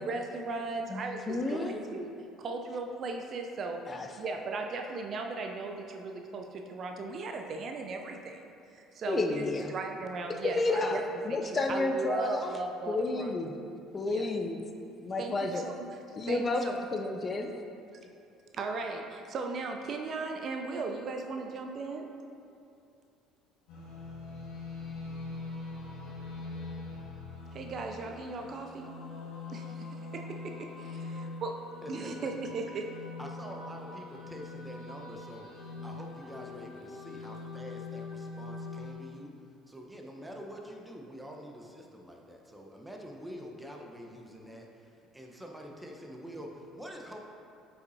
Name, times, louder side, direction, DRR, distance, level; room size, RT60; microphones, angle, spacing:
voice 1, 0.0-2.1 2.4-8.4 8.7-11.0 11.3-13.3 14.1-14.3 15.2-15.9 16.3-16.8 18.5-22.1 27.5-28.9 29.5-31.5 31.9-32.9, right 3 dB, 45° right, 3 dB, 0.5 m, -37 dB
voice 2, 0.9-1.8 3.9-4.1 9.1-9.7 10.4-11.0 11.2-12.5 12.9-13.6 13.9-14.6 15.0-15.6 16.2-17.5, left 2 dB, 30° left, 4 dB, 0.5 m, -31 dB
sound 1, 23.7-38.9, left 3 dB, 65° left, 1.4 m, -43 dB
voice 3, 31.8-32.3 32.7-32.8 33.2-39.3 39.7-47.2, equal, 5° right, 0 dB, 1.0 m, -46 dB
7.9 x 5.5 x 2.7 m, 2.6 s
hypercardioid pair, 60°, 0 cm